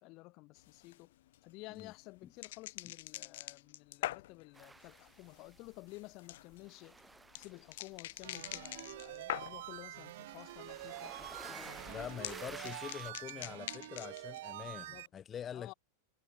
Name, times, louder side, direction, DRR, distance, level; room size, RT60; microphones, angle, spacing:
voice 1, 0.0-1.1 1.4-7.0 7.3-12.1 12.5-12.7 14.6-15.1 15.5-15.7, left 23 dB, 45° left, 2.2 m, -53 dB
sound 1, 0.6-9.8 10.2-10.7 11.0-14.4, left 15 dB, 70° left, 1.3 m, -45 dB
sound 2, 4.5-6.2 6.4-13.1, right 3 dB, 10° right, 1.3 m, -53 dB
sound 3, 8.2-15.1, right 16 dB, 70° right, 1.1 m, -47 dB
voice 2, 11.9-15.7, left 8 dB, 25° left, 1.0 m, -45 dB
supercardioid pair, 135°, 0 cm